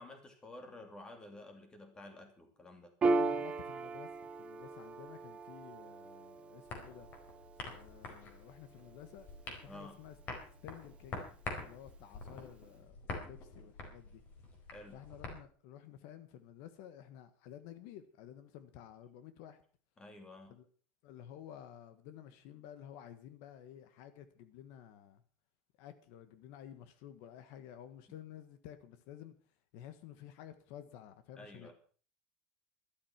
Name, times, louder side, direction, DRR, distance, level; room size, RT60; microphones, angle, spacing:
voice 1, 0.0-2.9 9.6-10.0 14.7-15.0 20.0-20.6 31.3-31.7, left 1 dB, 15° left, 2.7 m, -51 dB
Piano, 3.0-9.9, right 3 dB, 20° right, 1.1 m, -38 dB
voice 2, 3.1-4.1 4.4-7.1 7.7-10.1 10.6-14.2 14.9-19.6 20.5-20.7 21.0-25.2 25.8-29.3 29.7-31.7, left 10 dB, 55° left, 1.5 m, -52 dB
sound 1, 6.7-15.4, left 3 dB, 35° left, 4.4 m, -47 dB
13.0 x 12.5 x 5.9 m
cardioid pair, 170°, 6 cm